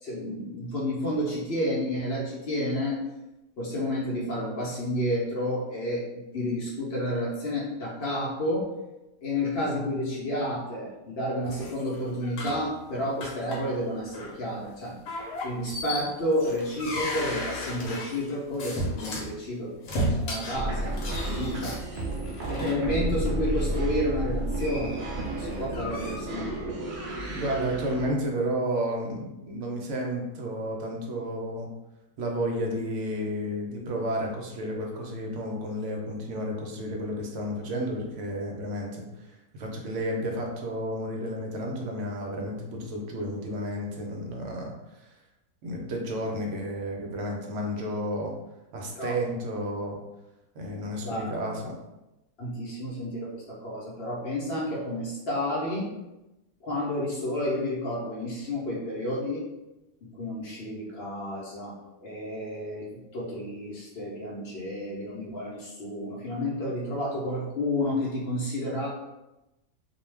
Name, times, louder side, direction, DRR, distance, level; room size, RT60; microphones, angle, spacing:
voice 1, 0.0-3.0 3.6-8.7 9.2-15.0 15.4-21.8 22.5-26.8 48.9-49.2 51.0-51.3 52.4-55.9 56.6-59.4 60.2-61.7 62.0-68.9, left 1 dB, 55° left, -6 dB, 0.8 m, -31 dB
sound 1, 11.4-12.7 13.2-13.8 14.1-14.3 15.1-19.3 19.8-22.7 23.4-23.6 25.3-26.2, left 1 dB, 75° left, 1.0 m, -34 dB
sound 2, 20.5-28.1, right 1 dB, 85° right, 0.4 m, -32 dB
voice 2, 27.2-31.7 32.2-39.0 39.5-44.7 45.6-48.3 48.7-50.0 50.6-51.8, equal, 65° right, 0 dB, 0.8 m, -31 dB
2.4 x 2.2 x 3.2 m, 0.97 s
omnidirectional pair, 1.5 m